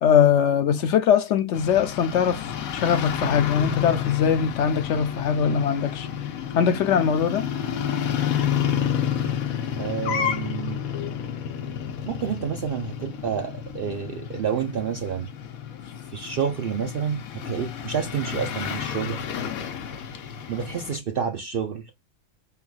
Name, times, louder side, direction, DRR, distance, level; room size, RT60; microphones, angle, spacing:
voice 1, 0.0-2.4 2.7-6.1 6.5-7.5, left 8 dB, 65° left, 0.9 m, -21 dB
sound 1, 1.5-21.0, left 9 dB, 90° left, 1.2 m, -30 dB
voice 2, 9.8-10.8 12.0-15.3 16.1-19.3 20.5-21.9, right 7 dB, 60° right, 0.6 m, -29 dB
4.7 x 3.4 x 2.3 m
omnidirectional pair, 1.4 m